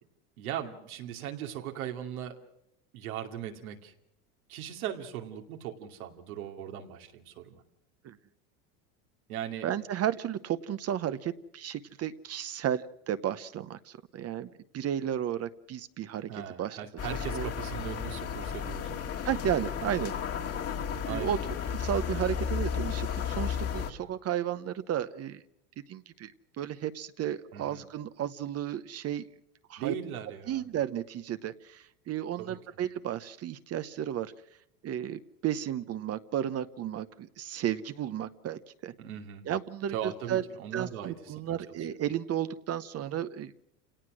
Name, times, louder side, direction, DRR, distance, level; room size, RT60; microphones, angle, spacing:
voice 1, 0.4-2.4 2.9-3.9 4.5-7.6 9.3-9.7 16.3-19.0 21.1-21.5 27.5-27.8 29.8-30.7 32.4-32.6 39.0-39.5 39.9-41.9, right 10 dB, 90° right, 4 dB, 2.7 m, -39 dB
voice 2, 9.6-14.5 14.7-16.3 16.6-16.8 17.3-17.5 19.2-20.2 21.1-21.4 21.7-25.4 25.9-26.3 26.6-29.3 29.7-29.9 30.5-34.3 34.8-38.9 39.5-40.4 40.7-43.5, right 10 dB, 35° right, 12 dB, 0.9 m, -33 dB
sound 1, 17.0-23.9, left 7 dB, 35° left, 1.9 m, -33 dB
28.5 x 18.0 x 6.2 m, 0.78 s
supercardioid pair, 115°, 42 cm